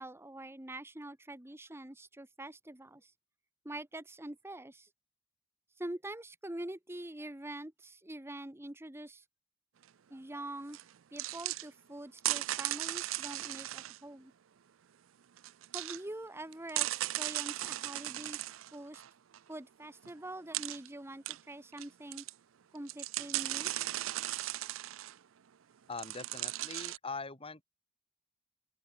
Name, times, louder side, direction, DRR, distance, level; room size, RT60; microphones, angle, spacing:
voice 1, 0.0-3.1 3.6-4.9 5.8-9.2 10.1-10.8 11.1-14.3 15.7-18.5 18.7-19.0 19.5-22.2 22.7-23.7, right 1 dB, 10° right, 1.1 m, -45 dB
sound 1, 10.7-10.8 11.2-11.7 12.2-14.0 15.4-16.0 16.5-19.4 20.0-20.1 20.5-20.9 21.3-21.9 22.1-22.3 22.8-25.2 25.9-27.0, right 16 dB, 75° right, 0.5 m, -37 dB
voice 2, 25.9-27.6, left 4 dB, 30° left, 3.5 m, -42 dB
open air
head